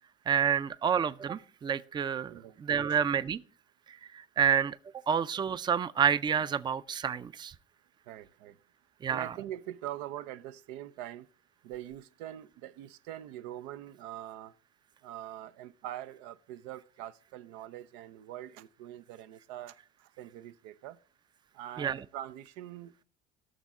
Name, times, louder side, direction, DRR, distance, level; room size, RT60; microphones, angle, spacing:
voice 1, 0.3-3.4 3.9-4.8 5.1-7.5 9.0-9.3 21.8-22.0, right 7 dB, 20° right, 0.4 m, -29 dB
voice 2, 8.1-8.6 9.1-11.3 11.6-14.5 15.0-21.0 21.5-23.0, right 12 dB, 90° right, 0.6 m, -43 dB
17.5 x 6.3 x 3.6 m
supercardioid pair, 105°, 20 cm